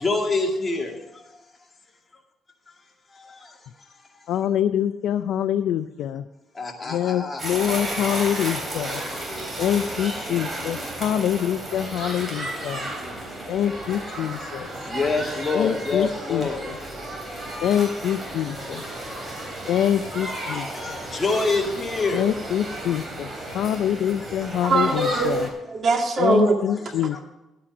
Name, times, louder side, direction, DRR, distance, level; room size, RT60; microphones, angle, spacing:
voice 1, 0.0-0.9 6.6-7.4 14.9-16.6 21.2-22.2 25.1-25.2, left 3 dB, 25° left, 1 dB, 2.1 m, -25 dB
voice 2, 4.3-6.2 6.9-9.0 9.6-12.9 13.5-14.7 15.5-16.8 17.6-18.8 19.7-20.7 22.1-23.3 23.5-25.5 26.2-27.2, left 10 dB, 80° left, 10 dB, 0.4 m, -25 dB
sound 1, 7.4-25.5, right 1 dB, 25° right, 3.6 m, -33 dB
voice 3, 24.6-26.6, right 3 dB, 50° right, 3 dB, 2.1 m, -22 dB
11.0 x 8.6 x 6.0 m, 0.97 s
cardioid pair, 105°, 0 cm